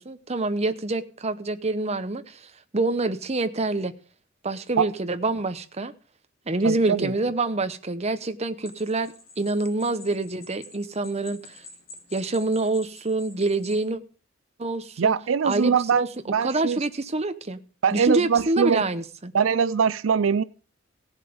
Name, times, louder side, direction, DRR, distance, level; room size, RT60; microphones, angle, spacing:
voice 1, 0.0-2.4 2.7-3.9 4.4-5.9 6.5-11.6 12.1-14.0 14.6-15.1 15.4-16.1 16.4-17.6 17.9-19.3, right 2 dB, 35° right, 0.9 m, -26 dB
voice 2, 6.6-7.1 15.0-16.8 17.8-18.8 19.3-20.4, right 6 dB, 85° right, 0.5 m, -22 dB
sound 1, 8.6-13.9, left 3 dB, 50° left, 4.3 m, -48 dB
16.5 x 7.4 x 5.2 m
head